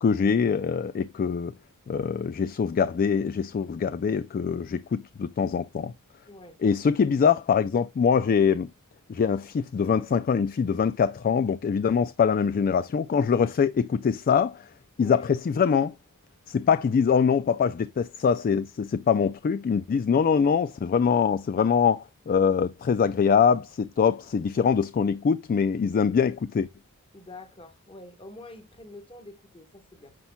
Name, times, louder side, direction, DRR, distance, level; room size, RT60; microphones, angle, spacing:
voice 1, 0.0-1.5 1.9-5.9 6.6-8.7 9.1-14.7 15.0-15.9 16.5-26.7, left 6 dB, 40° left, 0.3 m, -23 dB
voice 2, 6.3-6.6 6.9-7.0 15.0-15.3 27.1-30.1, left 2 dB, 25° left, 1.3 m, -46 dB
9.6 x 5.8 x 2.2 m
head